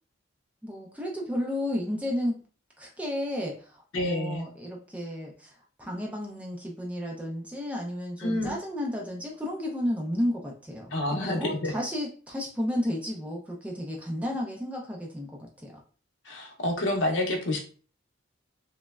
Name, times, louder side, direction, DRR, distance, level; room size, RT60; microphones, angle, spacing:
voice 1, 0.6-2.4 2.8-5.5 5.8-15.7, left 1 dB, 5° right, -1 dB, 0.3 m, -32 dB
voice 2, 3.9-4.5 8.2-8.5 10.9-11.7 16.3-17.6, left 1 dB, 65° left, 2 dB, 0.6 m, -28 dB
3.1 x 2.0 x 2.3 m, 0.40 s
head